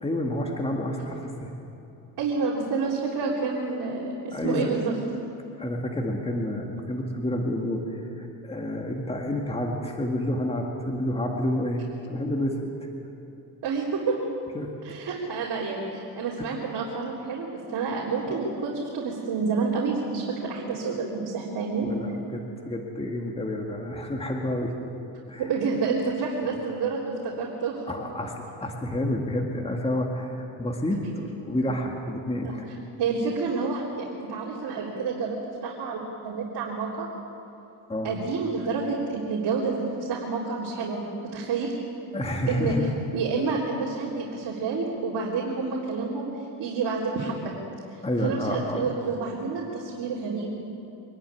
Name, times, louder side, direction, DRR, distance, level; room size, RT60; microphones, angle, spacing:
voice 1, 0.0-1.5 4.3-4.8 5.6-12.8 14.5-14.7 16.4-16.5 18.3-18.4 21.8-24.7 25.3-25.5 27.9-32.7 37.9-38.1 42.1-42.9 48.0-48.9, left 1 dB, 15° left, 1 dB, 2.0 m, -29 dB
voice 2, 2.2-4.9 13.6-14.2 14.8-21.9 25.4-27.9 32.4-32.5 33.0-37.1 38.0-41.0 41.3-41.7 42.5-42.7 43.1-46.3 46.6-47.5 47.9-50.6, right 4 dB, 55° right, -5 dB, 3.6 m, -29 dB
24.5 x 11.5 x 9.7 m, 3.0 s
cardioid pair, 110°, 46 cm